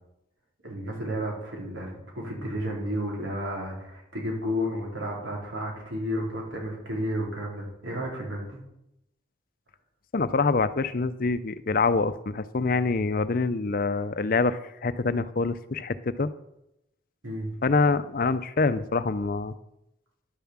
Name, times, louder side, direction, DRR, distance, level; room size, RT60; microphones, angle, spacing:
voice 1, 0.6-8.6 17.2-17.5, equal, 90° right, -2 dB, 4.0 m, -32 dB
voice 2, 10.1-16.3 17.6-19.5, left 3 dB, 45° left, 13 dB, 0.5 m, -25 dB
11.0 x 7.1 x 7.3 m, 0.85 s
head